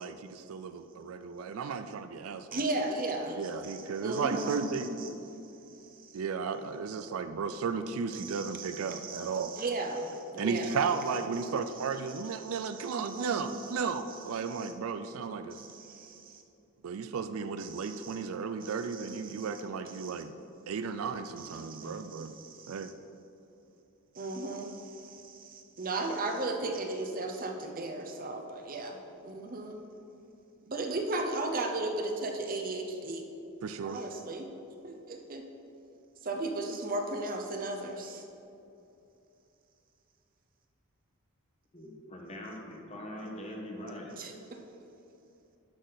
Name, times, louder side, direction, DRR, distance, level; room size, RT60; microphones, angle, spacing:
voice 1, 0.0-2.6 3.4-4.9 6.1-9.5 10.4-15.6 16.8-20.3 20.7-22.4 22.7-22.9 33.6-34.0, right 5 dB, 70° right, 10 dB, 0.4 m, -34 dB
voice 2, 2.5-5.4 5.7-6.2 8.1-13.7 14.1-14.7 15.5-16.4 17.6-18.2 18.6-19.5 19.9-20.2 21.4-22.9 24.1-29.8 30.7-33.3 33.8-34.5 34.8-35.4 36.2-38.2 44.2-44.6, right 2 dB, 40° right, 3 dB, 0.7 m, -37 dB
voice 3, 3.8-4.4 41.7-44.2, left 1 dB, 30° left, -1 dB, 1.3 m, -43 dB
11.5 x 6.1 x 4.0 m, 2.8 s
head